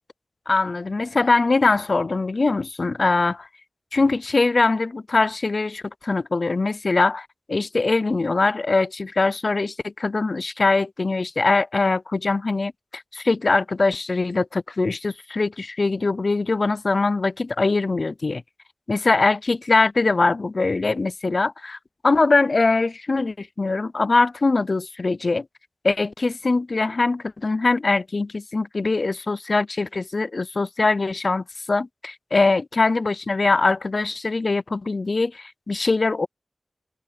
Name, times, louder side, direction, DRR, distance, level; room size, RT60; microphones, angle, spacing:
voice 1, 0.5-3.5 3.9-18.4 18.9-21.8 22.0-25.5 25.8-36.3, left 3 dB, 65° left, 0.4 m, -22 dB
wide cardioid pair, 50°, 0 cm